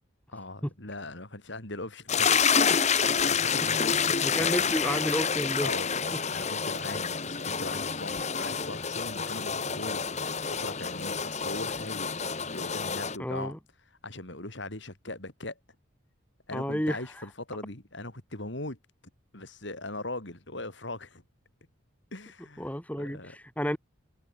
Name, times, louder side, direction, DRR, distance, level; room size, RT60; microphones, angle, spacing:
voice 1, 0.3-4.0 4.4-4.7 5.6-13.5 14.0-15.6 16.5-18.8 19.3-21.2 22.1-22.7 23.0-23.3, left 2 dB, 60° left, 3.8 m, -40 dB
sound 1, 2.1-13.2, left 6 dB, 35° left, 1.6 m, -28 dB
voice 2, 4.0-5.7 13.2-13.6 16.5-17.0 22.6-23.8, equal, 5° left, 4.6 m, -31 dB
head